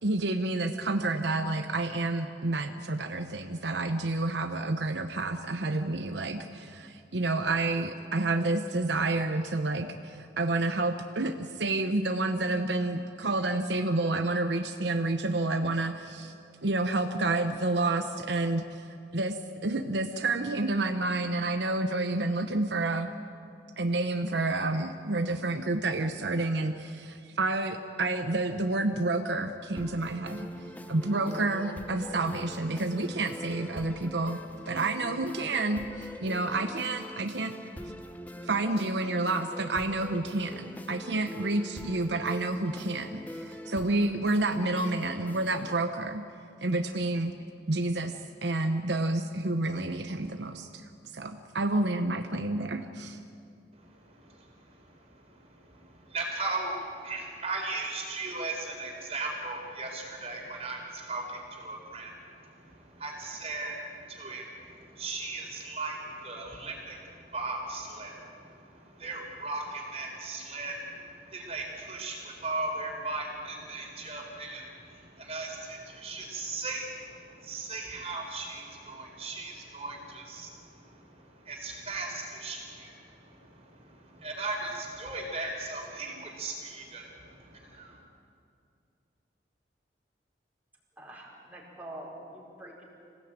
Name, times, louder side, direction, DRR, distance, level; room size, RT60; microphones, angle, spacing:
voice 1, 0.0-16.3 16.6-23.1 23.8-34.4 34.7-37.6 38.4-46.3 46.6-47.3 47.7-50.9 51.1-53.2, right 2 dB, 75° right, 7 dB, 0.9 m, -29 dB
sound 1, 29.8-45.8, equal, 10° left, 0.8 m, -43 dB
voice 2, 53.7-88.0, right 3 dB, 35° right, 1 dB, 4.4 m, -38 dB
voice 3, 91.0-92.8, right 1 dB, 10° right, -4 dB, 4.8 m, -45 dB
26.0 x 17.0 x 9.0 m, 2.5 s
head